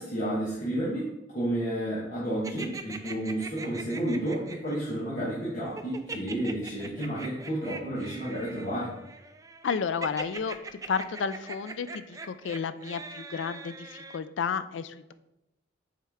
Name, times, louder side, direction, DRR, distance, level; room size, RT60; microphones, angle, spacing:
voice 1, 0.0-8.9, right 1 dB, 45° left, -7 dB, 1.3 m, -31 dB
sound 1, 2.4-4.8 5.8-14.2, right 3 dB, 20° right, 0.4 m, -41 dB
voice 2, 9.6-15.1, left 6 dB, 85° left, 13 dB, 0.4 m, -32 dB
7.4 x 4.3 x 3.6 m, 0.92 s
head